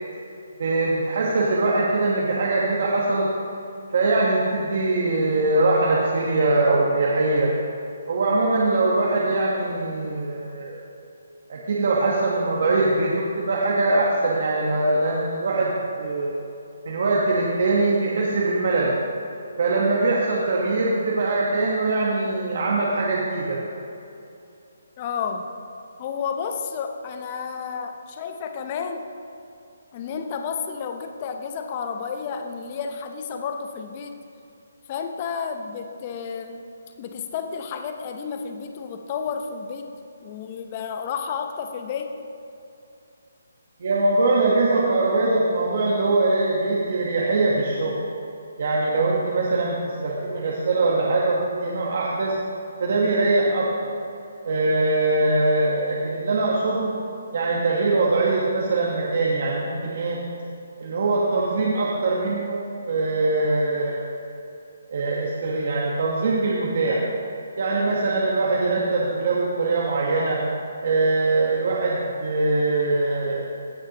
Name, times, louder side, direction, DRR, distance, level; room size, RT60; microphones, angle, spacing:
voice 1, 0.6-3.3 3.9-7.5 8.1-10.8 11.5-15.7 16.0-16.3 16.8-18.9 19.6-23.6 43.8-48.0 48.6-52.4 52.8-53.9 54.4-56.9 57.3-60.2 60.8-64.0 64.9-67.0 67.6-70.4 70.8-73.4, right 2 dB, 55° right, -4 dB, 1.2 m, -22 dB
voice 2, 25.0-25.5 26.0-29.1 29.9-34.2 34.9-36.6 37.0-39.9 40.2-42.1, left 6 dB, 30° left, 5 dB, 0.6 m, -31 dB
16.0 x 6.5 x 2.9 m, 2.7 s
hypercardioid pair, 155°, 0 cm